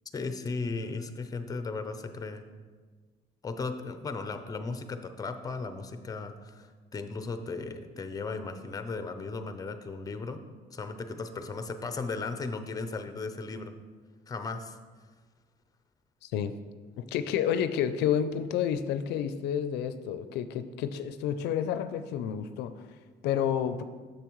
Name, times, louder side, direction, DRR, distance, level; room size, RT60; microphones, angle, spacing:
voice 1, 0.1-2.4 3.4-10.4 10.7-13.7 14.3-14.8, left 3 dB, 20° left, 8 dB, 0.6 m, -36 dB
voice 2, 16.2-16.5 17.0-22.8 23.2-23.8, left 9 dB, 80° left, 11 dB, 0.4 m, -30 dB
8.3 x 6.6 x 3.1 m, 1.5 s
cardioid pair, 110°, 17 cm